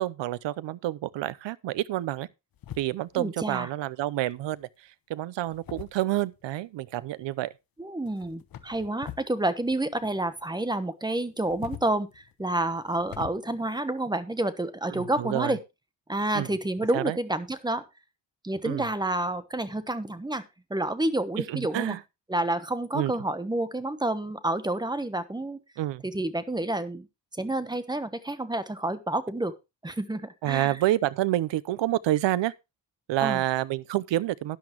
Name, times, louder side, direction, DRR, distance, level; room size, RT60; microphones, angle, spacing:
voice 1, 0.0-2.3 2.8-7.5 14.9-15.6 16.3-16.5 16.9-17.2 18.6-18.9 21.5-22.0 22.9-23.1 25.8-26.0 30.4-32.5 33.1-34.6, right 14 dB, 85° right, 0.8 m, -28 dB
sound 1, 2.5-3.3 4.3-4.7 5.4-6.5 8.1-9.4 9.6-10.5 11.3-13.3, left 10 dB, 55° left, 1.2 m, -44 dB
voice 2, 3.2-3.7 7.8-15.6 16.1-17.8 18.4-20.4 20.7-22.0 22.3-25.6 26.0-27.1 27.4-29.5 29.8-30.8 33.2-33.4, right 1 dB, 10° right, 1.0 m, -29 dB
12.5 x 10.5 x 3.0 m
cardioid pair, 140°, 43 cm